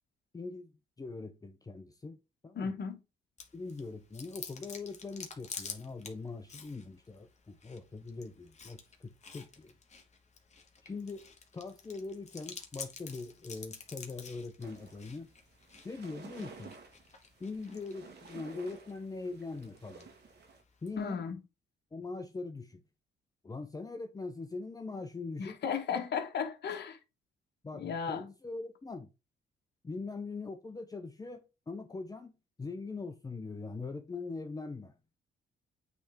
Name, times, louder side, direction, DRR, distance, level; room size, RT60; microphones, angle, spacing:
voice 1, 0.3-0.7 1.0-2.2 2.4-2.8 3.5-9.7 10.8-11.3 11.5-15.3 15.8-16.7 17.4-20.1 20.8-21.2 21.9-22.8 23.4-25.6 27.6-29.1 29.8-32.3 32.6-34.9, left 3 dB, 20° left, 0.6 m, -42 dB
voice 2, 2.5-3.0 21.0-21.4 25.4-27.0 27.7-28.2, left 6 dB, 60° left, 1.2 m, -35 dB
Chewing mastication, 3.4-21.0, left 5 dB, 35° left, 1.3 m, -50 dB
sound 1, 14.6-20.6, right 5 dB, 60° right, 1.6 m, -53 dB
8.2 x 3.4 x 3.5 m
cardioid pair, 90°, 20 cm